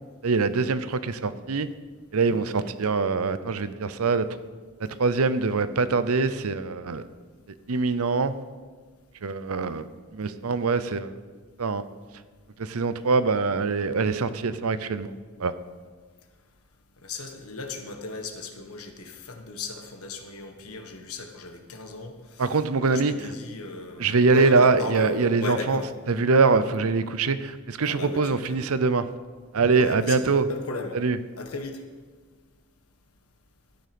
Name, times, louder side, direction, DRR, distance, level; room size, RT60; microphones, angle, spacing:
voice 1, 0.2-1.7 2.1-4.3 4.8-7.0 7.7-8.3 9.2-9.9 10.1-11.1 11.6-11.8 12.6-15.1 15.4-15.5 22.4-23.3 24.0-25.8 26.1-29.0 29.5-30.5 30.9-31.2, right 4 dB, 75° right, 13 dB, 0.7 m, -23 dB
voice 2, 2.3-2.6 17.0-22.1 22.8-25.9 27.8-28.4 29.7-31.0 31.4-31.8, left 3 dB, 80° left, 5 dB, 1.4 m, -36 dB
13.0 x 9.2 x 5.2 m, 1.5 s
head